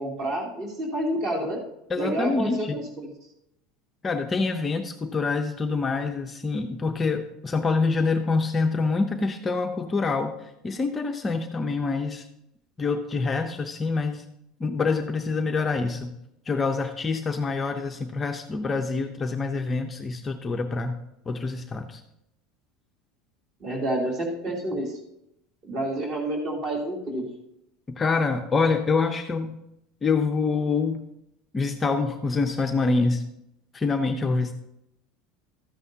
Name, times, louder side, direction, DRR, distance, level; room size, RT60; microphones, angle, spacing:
voice 1, 0.0-1.6 2.0-3.1 23.6-25.0 25.6-27.3, right 1 dB, 40° right, -1 dB, 2.8 m, -29 dB
voice 2, 1.9-2.8 4.0-10.3 10.6-12.2 12.8-14.2 14.6-16.1 16.5-21.0 21.3-22.0 28.0-29.6 30.0-31.0 31.5-33.2 33.7-34.5, left 4 dB, 15° left, 5 dB, 0.5 m, -26 dB
13.5 x 9.5 x 2.7 m, 0.82 s
cardioid pair, 160°, 0 cm